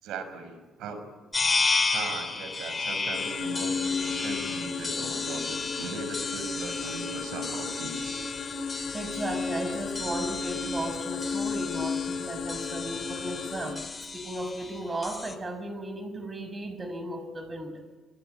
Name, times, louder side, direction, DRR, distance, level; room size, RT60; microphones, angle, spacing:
voice 1, 0.0-1.0 1.9-8.2, right 3 dB, 85° right, 9 dB, 5.7 m, -38 dB
sound 1, 1.3-15.3, left 4 dB, 30° left, 3.4 m, -33 dB
sound 2, 3.1-13.7, left 5 dB, 65° left, 4.7 m, -34 dB
voice 2, 8.9-17.8, right 1 dB, 30° right, 9 dB, 6.7 m, -35 dB
27.0 x 23.5 x 9.3 m, 1.2 s
cardioid pair, 90°, 0 cm